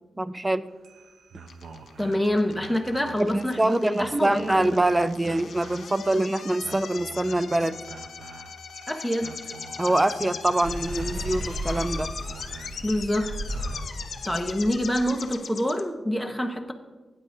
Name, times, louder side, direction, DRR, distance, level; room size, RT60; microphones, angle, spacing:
voice 1, 0.2-0.6 3.2-7.8 9.8-12.1, right 1 dB, 15° right, 14 dB, 0.4 m, -24 dB
sound 1, 0.7-14.0, right 4 dB, 80° right, 0.6 m, -47 dB
sound 2, 1.5-15.8, left 6 dB, 70° left, 0.9 m, -39 dB
voice 2, 2.0-4.8 8.9-9.4 12.8-13.3 14.2-16.7, equal, ahead, 3 dB, 0.9 m, -26 dB
sound 3, 10.6-15.1, equal, 50° right, 2.9 m, -35 dB
17.5 x 9.1 x 2.7 m, 1.2 s
wide cardioid pair, 125°, 0 cm